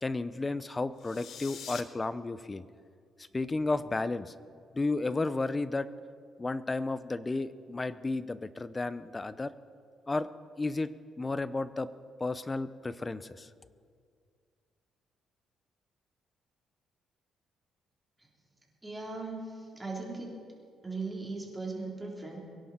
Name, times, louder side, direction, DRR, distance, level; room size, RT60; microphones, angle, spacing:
voice 1, 0.0-2.6 3.2-4.3 4.7-5.9 6.4-9.5 10.1-10.3 10.6-10.9 11.2-11.9 12.2-13.5, left 3 dB, 25° left, 15 dB, 0.6 m, -32 dB
sound 1, 1.0-1.8, left 8 dB, 70° left, 0.9 m, -44 dB
voice 2, 18.8-20.4 20.8-22.4, right 3 dB, 15° right, -2 dB, 3.7 m, -38 dB
23.5 x 11.0 x 4.4 m, 2.2 s
cardioid pair, 90°, 0 cm